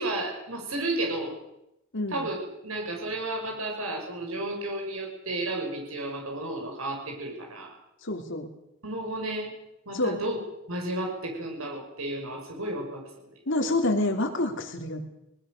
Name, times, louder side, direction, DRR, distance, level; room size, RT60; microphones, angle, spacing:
voice 1, 0.0-1.3 2.1-2.4 2.6-7.7 8.8-9.5 9.9-10.4 10.7-13.0, right 2 dB, 80° right, 0 dB, 6.4 m, -32 dB
voice 2, 8.0-8.5 9.9-10.2 13.5-15.0, left 2 dB, 60° left, 4 dB, 3.0 m, -27 dB
24.0 x 20.5 x 6.6 m, 0.87 s
head